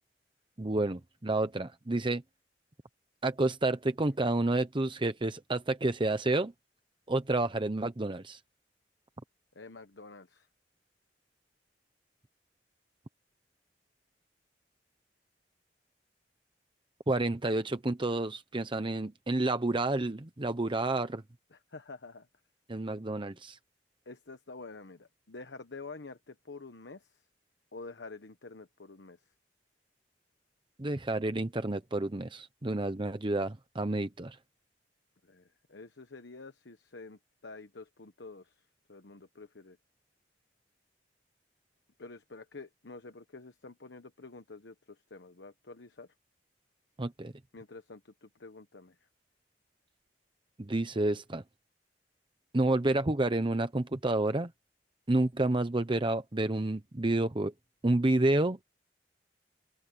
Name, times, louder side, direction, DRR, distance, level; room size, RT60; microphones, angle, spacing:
voice 1, 0.6-2.2 3.2-6.5 7.1-8.4 17.1-21.2 22.7-23.6 30.8-34.4 47.0-47.3 50.6-51.4 52.5-54.5 55.1-57.5 57.8-58.6, right 2 dB, 30° right, 0.9 m, -29 dB
voice 2, 9.5-10.5 21.5-22.3 24.1-27.2 27.7-29.2 35.2-38.6 38.9-39.8 42.0-46.1 47.5-49.0, left 3 dB, 85° left, 1.2 m, -48 dB
open air
head